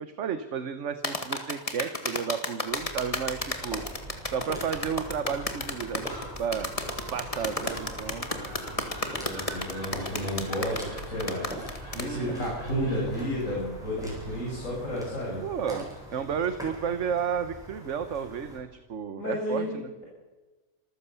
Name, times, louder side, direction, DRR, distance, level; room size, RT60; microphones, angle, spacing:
voice 1, 0.0-3.8 4.3-6.0 6.4-6.7 7.1-8.3 11.9-12.5 15.4-19.9, right 7 dB, 55° right, 10 dB, 1.3 m, -32 dB
sound 1, 1.0-12.1, left 2 dB, 25° left, 2.1 m, -32 dB
Gull seagull, 2.7-15.1, right 2 dB, 30° right, 8.0 m, -44 dB
sound 2, 3.5-18.6, equal, ahead, 7.9 m, -43 dB
voice 2, 8.2-11.4 12.0-15.4 19.2-20.1, equal, 60° left, -4 dB, 6.9 m, -32 dB
26.5 x 14.5 x 7.0 m, 1.2 s
omnidirectional pair, 1.5 m